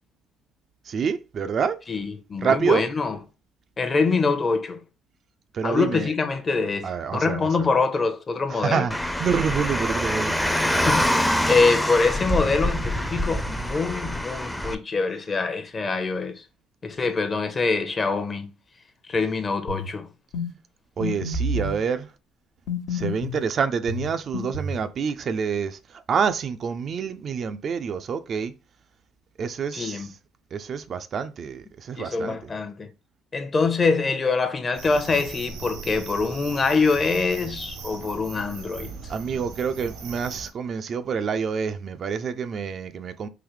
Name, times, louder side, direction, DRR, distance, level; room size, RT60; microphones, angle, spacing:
voice 1, 0.8-1.8 2.4-2.8 5.5-6.1 6.8-7.7 8.5-10.8 11.1-11.5 21.0-22.1 22.9-28.5 29.4-30.2 30.5-32.5 39.1-43.3, right 6 dB, 50° right, 0.4 m, -27 dB
voice 2, 1.9-3.2 3.8-4.8 5.6-8.8 10.9-16.4 16.8-18.5 19.1-20.1 29.7-30.1 32.0-32.9 33.3-38.9, left 4 dB, 35° left, 0.8 m, -24 dB
Car, 8.9-14.8, equal, 5° left, 0.5 m, -25 dB
sound 1, 19.7-19.9 20.3-20.5 21.0-21.8 22.7-23.4 23.9-24.8, left 2 dB, 75° left, 0.9 m, -29 dB
sound 2, 34.7-40.5, right 5 dB, 75° right, 0.9 m, -39 dB
3.9 x 2.7 x 3.1 m
hypercardioid pair, 65°, 0 cm